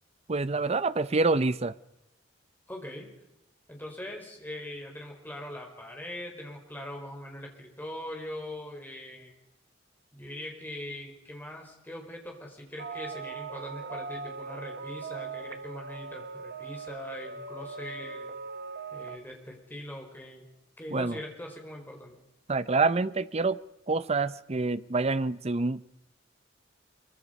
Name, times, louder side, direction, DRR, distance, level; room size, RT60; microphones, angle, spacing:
voice 1, 0.3-1.7 20.9-21.2 22.5-23.6 23.9-25.8, right 3 dB, 35° right, 0.7 m, -27 dB
voice 2, 2.7-3.1 3.7-9.3 10.1-18.3 18.9-20.4 20.8-22.2, left 1 dB, 10° left, 4.9 m, -41 dB
sound 1, 12.8-19.2, right 4 dB, 60° right, 1.1 m, -40 dB
24.5 x 24.0 x 5.4 m
head